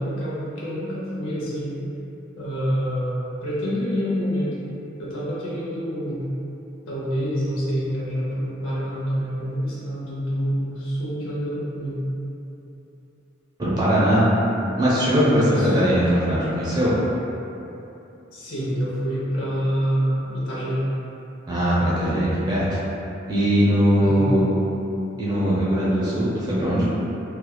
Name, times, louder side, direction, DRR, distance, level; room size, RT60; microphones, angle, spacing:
voice 1, 0.0-1.8 2.4-4.6 5.0-6.2 6.9-12.0 15.4-15.8 18.3-20.8 24.0-24.3, equal, 85° left, -8 dB, 0.7 m, -27 dB
voice 2, 13.6-14.3 14.8-16.9 21.5-22.8 23.3-24.4 25.2-26.9, equal, 20° right, -9 dB, 0.5 m, -20 dB
2.9 x 2.3 x 2.2 m, 2.9 s
head